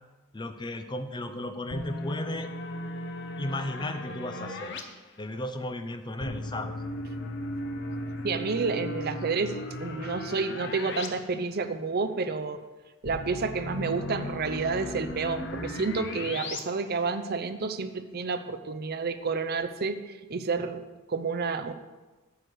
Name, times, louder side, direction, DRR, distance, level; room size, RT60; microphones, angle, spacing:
voice 1, 0.3-2.5 3.4-4.8 5.2-6.8, left 1 dB, 20° left, 8 dB, 0.6 m, -35 dB
sound 1, 1.7-4.8 6.2-11.1 11.4-11.5 13.0-16.6, left 1 dB, 55° left, 0.9 m, -36 dB
voice 2, 8.2-12.6 13.0-21.7, right 4 dB, 45° right, 9 dB, 0.6 m, -30 dB
9.5 x 4.8 x 7.8 m, 1.2 s
head